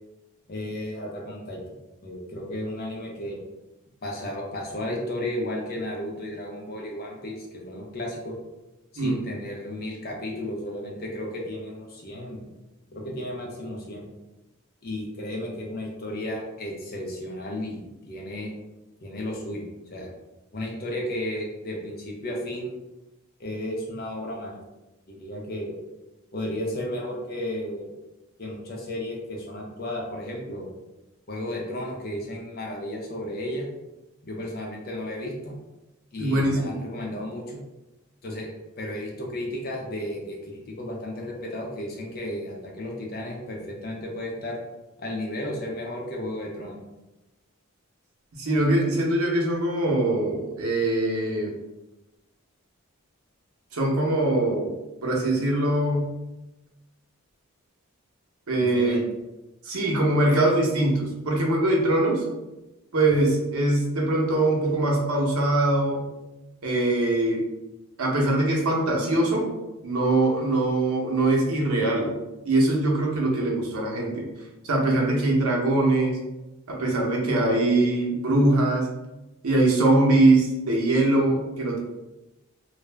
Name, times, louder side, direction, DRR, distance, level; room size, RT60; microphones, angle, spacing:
voice 1, 0.5-1.6 2.0-3.4 4.0-8.3 8.9-12.5 12.9-14.1 14.8-18.5 19.0-20.1 20.5-22.7 23.4-24.6 25.1-25.7 26.3-27.9 28.4-30.7 31.3-33.7 34.2-35.5 36.1-37.6 38.2-38.5 38.8-44.6 45.0-46.8 58.6-59.0, left 1 dB, 45° left, -1 dB, 0.6 m, -33 dB
voice 2, 36.2-36.7 48.4-51.5 53.7-54.7 55.0-56.1 58.5-59.0 59.6-62.2 62.9-66.1 66.6-67.4 68.0-69.5 69.8-72.1 72.4-74.3 74.6-76.2 76.7-78.9 79.4-81.8, right 2 dB, 90° right, -2 dB, 0.7 m, -22 dB
2.4 x 2.0 x 3.2 m, 1.0 s
head